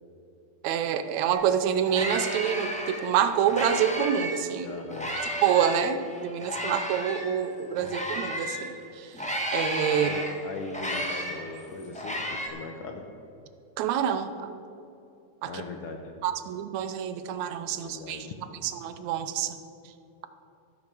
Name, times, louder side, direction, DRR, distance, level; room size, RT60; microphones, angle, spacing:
voice 1, 0.6-4.7 5.4-10.1 13.8-14.5 15.4-15.5 16.2-18.3 18.6-19.6, right 8 dB, 75° right, 10 dB, 1.9 m, -27 dB
sound 1, 1.3-1.4 1.7-4.4 4.9-8.7 9.1-12.5, equal, 5° left, 0.5 m, -33 dB
voice 2, 4.6-5.1 9.9-13.1 15.4-16.2 17.7-18.3, left 3 dB, 65° left, 3 dB, 1.5 m, -39 dB
14.0 x 8.2 x 6.7 m, 2.8 s
omnidirectional pair, 3.4 m